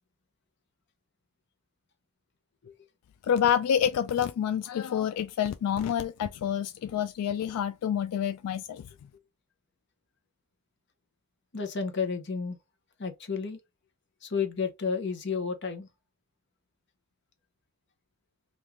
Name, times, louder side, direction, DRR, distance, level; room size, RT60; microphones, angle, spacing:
voice 1, 3.3-8.8, left 9 dB, 85° left, 0.3 m, -28 dB
voice 2, 11.5-12.6 13.0-13.6 14.2-15.9, left 5 dB, 50° left, 0.8 m, -31 dB
3.5 x 2.5 x 3.0 m
head